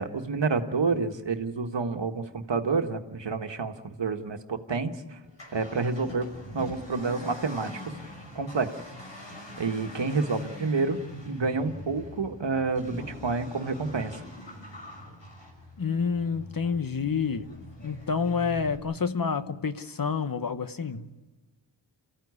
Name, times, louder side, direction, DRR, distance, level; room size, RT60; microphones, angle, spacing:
voice 1, 0.0-3.7 4.0-5.2 5.5-6.3 6.5-7.7 8.3-8.7 9.6-11.0 11.3-14.1, right 4 dB, 70° right, 1.6 m, -28 dB
Accelerating revving vroom, 5.2-18.8, left 1 dB, 70° left, 6.1 m, -44 dB
voice 2, 15.8-17.5 17.8-21.1, left 5 dB, 50° left, 1.1 m, -28 dB
28.5 x 15.0 x 9.7 m
wide cardioid pair, 65°, 45 cm